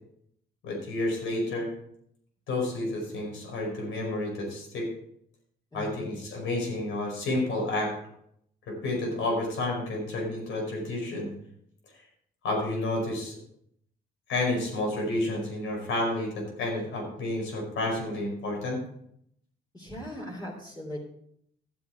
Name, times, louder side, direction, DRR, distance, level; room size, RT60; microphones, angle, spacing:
voice 1, 0.6-1.7 2.5-4.9 5.7-7.9 8.7-11.3 12.4-13.4 14.3-18.8, left 2 dB, 80° left, 0 dB, 5.1 m, -30 dB
voice 2, 5.7-6.1 19.7-21.0, equal, 20° left, -5 dB, 3.3 m, -39 dB
12.5 x 8.0 x 4.6 m, 0.70 s
cardioid pair, 90°, 20 cm